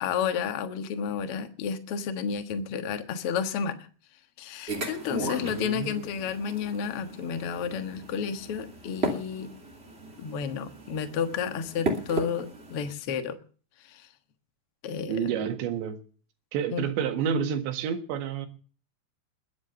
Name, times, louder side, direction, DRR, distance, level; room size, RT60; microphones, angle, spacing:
voice 1, 0.0-3.9 4.4-9.5 10.2-13.4 13.8-14.1 14.8-15.3 16.7-16.8, left 7 dB, 85° left, 8 dB, 1.2 m, -31 dB
sound 1, 4.7-12.9, right 2 dB, 20° right, 2.1 m, -36 dB
voice 2, 5.5-6.0 15.1-16.0 16.5-18.5, right 7 dB, 85° right, 8 dB, 3.9 m, -29 dB
21.0 x 9.5 x 6.8 m, 0.41 s
omnidirectional pair, 5.0 m